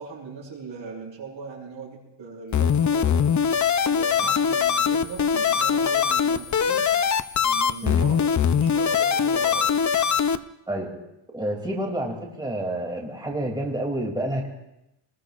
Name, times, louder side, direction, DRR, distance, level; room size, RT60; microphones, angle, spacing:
voice 1, 0.0-3.3 3.9-6.9 7.4-9.8, right 5 dB, 70° right, -1 dB, 6.3 m, -39 dB
sound 1, 2.5-10.4, left 7 dB, 40° left, 0.6 m, -22 dB
voice 2, 11.3-14.5, right 1 dB, 10° right, -1 dB, 2.8 m, -29 dB
28.5 x 20.5 x 2.5 m, 0.88 s
cardioid pair, 120°, 48 cm